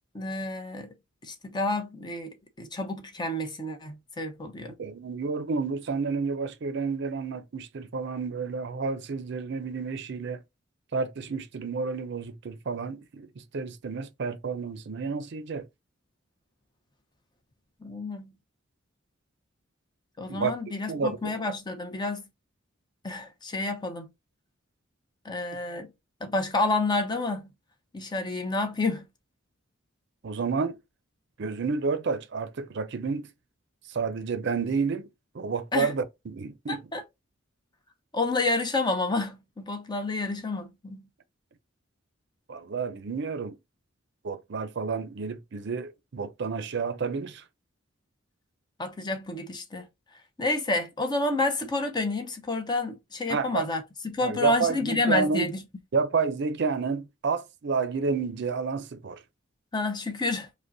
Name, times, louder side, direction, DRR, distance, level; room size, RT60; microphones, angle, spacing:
voice 1, 0.1-0.9 1.2-4.7 17.8-18.3 20.2-22.3 23.0-24.1 25.2-25.9 26.2-27.5 27.9-29.1 35.7-35.9 36.7-37.0 38.1-41.1 48.8-49.9 50.4-55.6 59.7-60.5, left 2 dB, 20° left, 0.7 m, -29 dB
voice 2, 4.7-10.4 10.9-15.7 20.3-20.5 20.9-21.3 30.2-30.8 31.4-33.3 33.9-35.1 35.3-36.8 42.5-43.6 44.2-47.4 53.3-53.7 54.2-55.5 55.9-59.2, right 5 dB, 60° right, 0.5 m, -30 dB
5.1 x 2.2 x 2.6 m
head